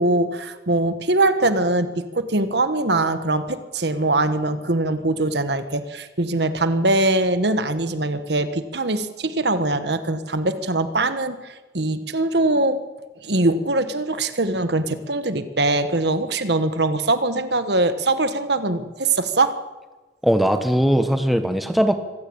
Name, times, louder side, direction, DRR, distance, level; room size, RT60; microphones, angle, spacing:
voice 1, 0.0-12.8 13.2-19.5, right 2 dB, 65° right, 11 dB, 1.5 m, -22 dB
voice 2, 20.2-21.9, equal, ahead, 8 dB, 1.3 m, -19 dB
24.5 x 16.0 x 8.8 m, 1.2 s
head